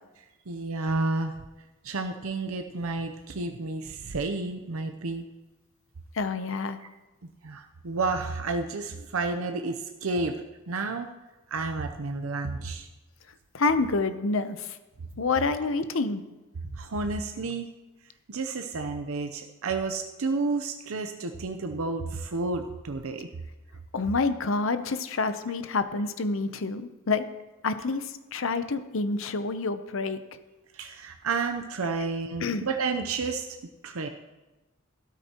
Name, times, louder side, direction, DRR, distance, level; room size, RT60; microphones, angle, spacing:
voice 1, 0.5-1.3 1.8-5.2 7.2-11.1 11.5-12.9 16.7-17.7 18.3-23.3 30.7-33.5 33.8-34.1, right 3 dB, 85° right, 5 dB, 0.7 m, -31 dB
voice 2, 6.1-6.8 13.5-14.8 15.2-16.2 23.9-27.2 27.6-30.2 32.4-32.7, left 3 dB, 65° left, 10 dB, 0.7 m, -28 dB
13.0 x 12.5 x 2.9 m, 1.1 s
head